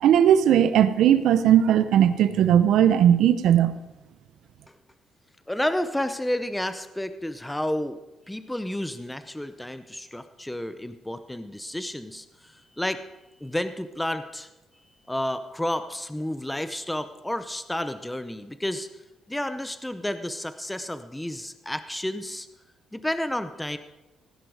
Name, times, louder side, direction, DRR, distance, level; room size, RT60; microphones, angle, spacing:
voice 1, 0.0-3.8, right 10 dB, 75° right, 12 dB, 0.7 m, -18 dB
voice 2, 5.5-8.0 8.3-13.0 13.4-14.5 15.1-18.9 19.3-22.5 22.9-23.8, left 1 dB, 5° left, 10 dB, 0.6 m, -31 dB
17.0 x 10.0 x 4.8 m, 1.0 s
cardioid pair, 110°, 0 cm